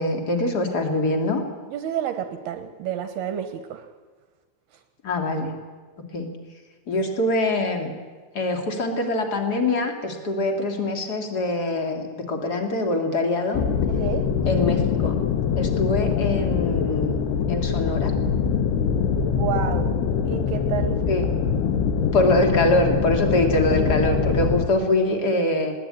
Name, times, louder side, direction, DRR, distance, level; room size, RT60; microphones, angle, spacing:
voice 1, 0.0-1.4 5.0-5.5 6.1-6.3 6.9-7.9 8.3-13.6 14.4-15.2 15.6-17.2 17.5-18.1 21.1-21.3 22.1-25.7, left 2 dB, 45° left, 4 dB, 1.3 m, -23 dB
voice 2, 1.7-3.9 14.0-14.3 19.2-21.0, right 9 dB, 70° right, 7 dB, 2.5 m, -30 dB
sound 1, 13.5-24.7, left 6 dB, 70° left, 2.8 m, -23 dB
21.0 x 18.0 x 8.9 m, 1.4 s
omnidirectional pair, 5.7 m